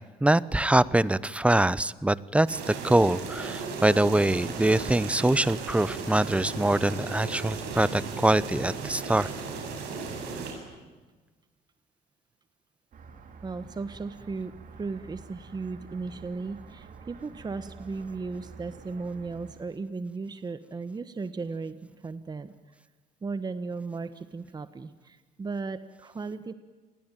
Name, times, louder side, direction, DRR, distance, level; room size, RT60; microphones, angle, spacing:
voice 1, 0.2-9.3, right 1 dB, 5° right, 19 dB, 0.9 m, -24 dB
sound 1, 2.5-10.5, right 4 dB, 85° right, 7.9 m, -36 dB
sound 2, 12.9-19.7, right 4 dB, 55° right, 4.4 m, -48 dB
voice 2, 13.4-22.5 23.2-26.5, right 4 dB, 25° right, 12 dB, 1.3 m, -36 dB
28.5 x 21.0 x 9.2 m, 1.3 s
cardioid pair, 110°, 17 cm